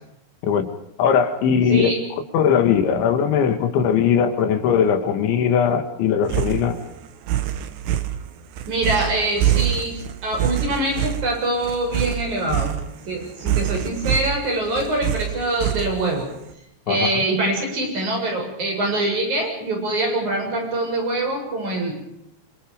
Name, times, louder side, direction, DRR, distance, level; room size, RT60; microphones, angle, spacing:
voice 1, 1.0-1.9 2.3-6.8 16.9-17.2, left 7 dB, 80° left, 8 dB, 4.3 m, -19 dB
voice 2, 1.7-2.1 8.7-16.3 16.9-22.0, right 1 dB, 40° right, 1 dB, 8.7 m, -24 dB
sound 1, 6.3-16.3, right 11 dB, 70° right, 3.5 m, -25 dB
28.0 x 26.0 x 5.2 m, 0.78 s
omnidirectional pair, 5.3 m